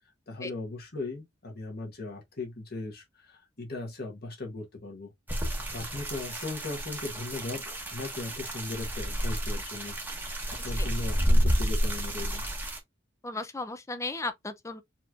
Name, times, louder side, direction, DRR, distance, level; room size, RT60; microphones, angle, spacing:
voice 1, 0.3-12.5, left 2 dB, 55° left, 1.6 m, -38 dB
sound 1, 5.3-12.8, equal, 10° right, 1.0 m, -30 dB
voice 2, 13.2-14.8, left 3 dB, 15° left, 0.5 m, -35 dB
4.3 x 3.0 x 2.4 m
head